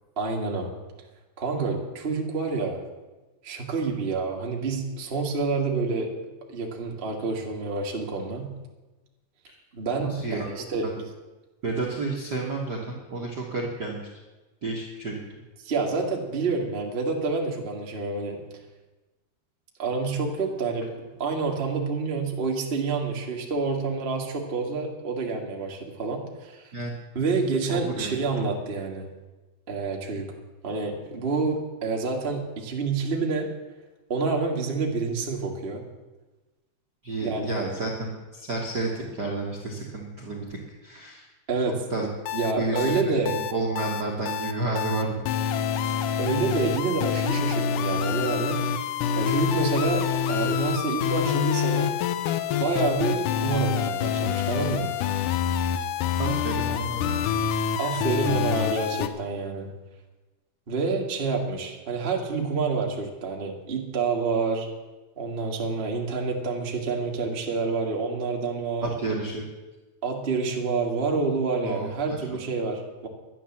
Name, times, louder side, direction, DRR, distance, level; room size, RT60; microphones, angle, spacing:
voice 1, 0.2-0.7 1.4-2.8 3.4-6.1 6.5-8.5 9.7-10.9 15.6-18.4 19.8-20.9 21.2-26.6 27.1-29.0 29.7-30.3 30.6-33.5 34.1-35.8 37.2-37.5 41.5-41.8 42.3-43.4 46.2-50.0 50.3-51.9 52.6-54.9 56.7-56.8 57.8-59.7 60.7-64.7 65.2-68.9 70.0-73.1, right 4 dB, 40° right, 0 dB, 0.8 m, -28 dB
voice 2, 10.0-10.5 10.8-11.0 11.6-14.1 14.6-15.2 26.7-26.9 27.7-28.1 37.0-41.3 41.9-42.1 42.6-45.2 56.2-57.3 57.8-58.1 68.8-69.4 71.6-72.2, right 3 dB, 55° right, -1 dB, 1.1 m, -31 dB
sound 1, 42.3-59.1, left 8 dB, 80° left, 1.9 m, -26 dB
12.0 x 9.8 x 7.2 m, 1.1 s
omnidirectional pair, 4.4 m